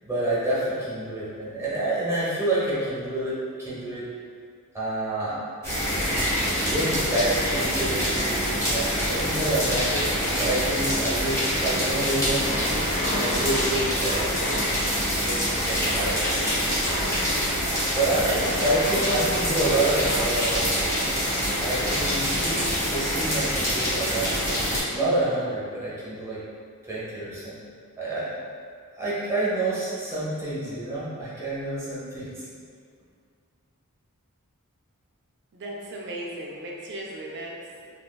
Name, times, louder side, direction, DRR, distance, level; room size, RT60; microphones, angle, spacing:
voice 1, 0.0-4.1 4.7-5.4 6.6-10.1 10.4-12.8 13.1-14.7 15.0-16.7 17.9-20.7 21.6-24.6 24.9-26.4 26.8-27.6 28.0-28.3 28.9-32.5, right 1 dB, 15° right, -9 dB, 0.9 m, -28 dB
sound 1, 5.6-24.8, equal, 15° left, 0.9 m, -26 dB
sound 2, 11.1-23.3 24.4-24.5 24.9-25.0, left 1 dB, 50° left, 0.9 m, -35 dB
voice 2, 35.5-37.7, right 1 dB, 55° right, -3 dB, 0.6 m, -36 dB
3.4 x 2.9 x 2.2 m, 2.2 s
head